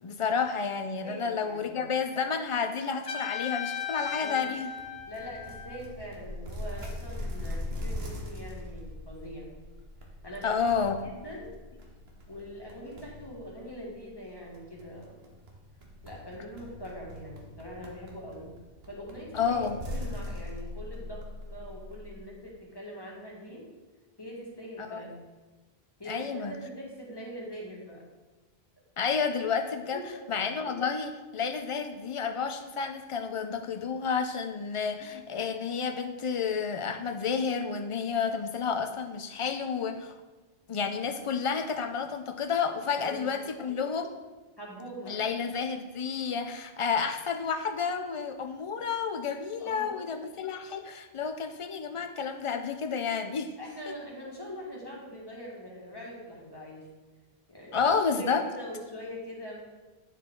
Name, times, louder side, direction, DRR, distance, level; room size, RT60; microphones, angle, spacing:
voice 1, 0.0-4.7 10.4-11.0 19.3-19.8 24.8-25.1 26.1-26.5 29.0-30.0 30.3-40.1 40.7-44.1 45.1-53.5 57.7-58.4, left 6 dB, 40° left, 6 dB, 0.5 m, -30 dB
voice 2, 1.0-1.9 4.1-4.5 5.1-9.5 10.2-10.6 11.0-11.6 12.3-15.2 16.0-18.5 18.9-23.6 24.2-25.2 26.0-28.1 29.9-30.2 30.6-30.7 42.9-43.3 44.6-45.3 49.6-50.1 53.6-56.8 57.5-59.6, equal, 25° left, -4 dB, 1.8 m, -43 dB
Trumpet, 3.1-5.9, left 8 dB, 70° left, 1.3 m, -36 dB
sound 1, 4.8-22.2, left 1 dB, 80° right, 1.3 m, -41 dB
9.9 x 4.7 x 3.8 m, 1.2 s
omnidirectional pair, 1.0 m